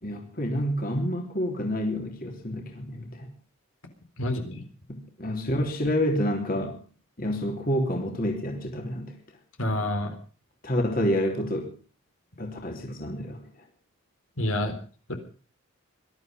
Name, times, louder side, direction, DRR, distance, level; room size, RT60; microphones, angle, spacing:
voice 1, 0.0-3.3 4.9-6.8 7.2-9.2 10.6-11.7 12.4-13.5, equal, 40° left, 2 dB, 3.5 m, -28 dB
voice 2, 4.2-4.6 9.6-10.2 14.4-14.8 15.1-15.2, left 1 dB, 75° left, 5 dB, 3.9 m, -28 dB
21.5 x 13.0 x 5.2 m, 0.40 s
head